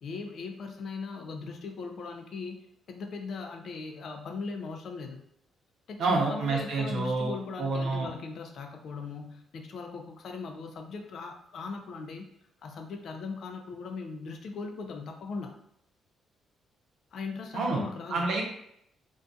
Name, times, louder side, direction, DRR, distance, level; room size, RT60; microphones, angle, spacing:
voice 1, 0.0-5.2 5.9-12.3 12.6-15.6 17.1-18.3, left 4 dB, 65° left, 3 dB, 0.4 m, -39 dB
voice 2, 6.0-7.3 7.6-8.1 17.5-17.8 18.1-18.4, right 3 dB, 70° right, 0 dB, 0.7 m, -28 dB
2.6 x 2.2 x 2.3 m, 0.73 s
cardioid pair, 90°, 0 cm